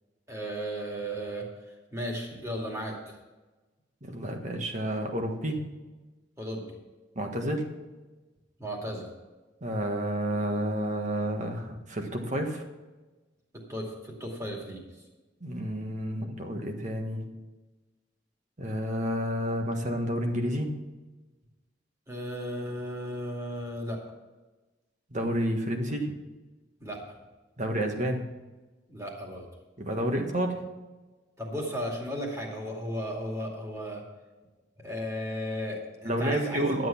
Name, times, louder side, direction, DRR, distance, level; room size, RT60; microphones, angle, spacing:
voice 1, 0.3-1.5 1.9-3.2 6.4-6.7 8.6-9.1 13.7-14.8 22.1-24.0 26.8-27.1 28.9-29.5 31.4-34.0 34.8-36.8, equal, 15° right, -1 dB, 2.4 m, -35 dB
voice 2, 4.0-5.6 7.1-7.7 9.6-12.7 15.4-17.3 18.6-20.7 25.1-26.1 27.6-28.3 29.8-30.6 36.0-36.9, right 1 dB, 40° right, 3 dB, 1.5 m, -30 dB
11.5 x 7.8 x 5.9 m, 1.2 s
head